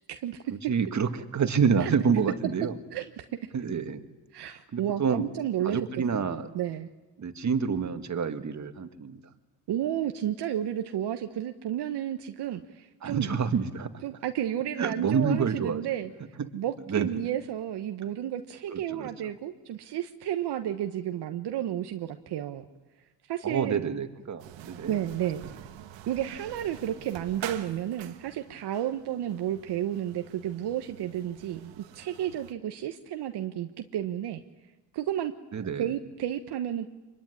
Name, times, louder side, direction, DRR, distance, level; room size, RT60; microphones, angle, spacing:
voice 1, 0.1-0.4 1.8-1.9 2.9-3.2 4.3-5.8 6.1-6.2 6.5-6.9 9.7-13.3 14.0-16.1 16.5-22.7 23.3-23.8 24.9-25.5 26.1-34.4 34.9-35.3 35.8-36.9, right 11 dB, 65° right, 6 dB, 1.3 m, -32 dB
voice 2, 0.7-2.7 3.5-4.0 4.7-5.2 5.6-6.5 7.2-9.2 13.0-13.9 14.8-15.8 16.4-16.5 16.9-17.1 18.7-19.1 23.4-25.0 35.5-35.9, right 6 dB, 40° right, 8 dB, 2.1 m, -28 dB
sound 1, 24.4-32.5, right 11 dB, 80° right, 1.6 m, -46 dB
26.0 x 22.0 x 9.9 m, 1.1 s
cardioid pair, 90°, 43 cm